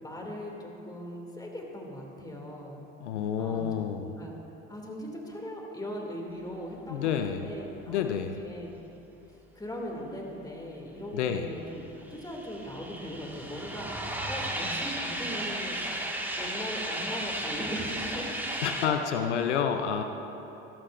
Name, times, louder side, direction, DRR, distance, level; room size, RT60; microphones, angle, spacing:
voice 1, 0.0-2.8 3.4-3.6 4.0-4.3 4.7-8.7 9.5-15.8 16.4-18.3 18.8-20.0, equal, 10° left, 0 dB, 2.4 m, -39 dB
voice 2, 3.0-4.1 6.9-7.5 7.9-8.4 11.1-11.5 18.6-20.0, left 8 dB, 90° left, 6 dB, 0.6 m, -29 dB
sound 1, 11.7-18.9, right 1 dB, 5° right, 1.7 m, -34 dB
17.0 x 13.0 x 2.5 m, 3.0 s
hypercardioid pair, 70°, 34 cm